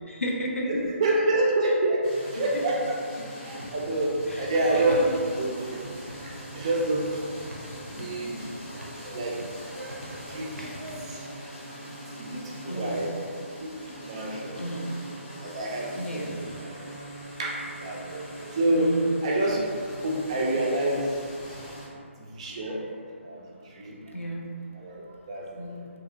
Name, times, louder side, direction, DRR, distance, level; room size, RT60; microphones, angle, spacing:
voice 1, 0.1-0.8 4.3-4.4 6.1-6.3 7.9-8.1 12.7-13.1 14.6-15.0 16.0-16.4 18.7-19.1 24.1-24.5 25.6-25.9, equal, 70° left, -1 dB, 0.5 m, -33 dB
voice 2, 0.7-3.0 3.4-5.9 6.5-7.2 8.0-8.5 9.1-9.4 9.7-9.8 10.3-10.8 11.1-11.3 12.2-13.1 13.6-13.7 14.0-14.6 15.4-16.8 17.4-18.2 18.5-19.6 20.0-21.1 22.4-22.8 23.2-24.0 24.7-25.6, right 2 dB, 25° right, -3 dB, 0.3 m, -27 dB
sound 1, 2.0-21.9, equal, 20° left, 0.6 m, -42 dB
sound 2, 3.6-11.0, equal, 90° right, 0.5 m, -43 dB
2.8 x 2.7 x 2.5 m, 2.2 s
figure-of-eight pair, 140°, 7 cm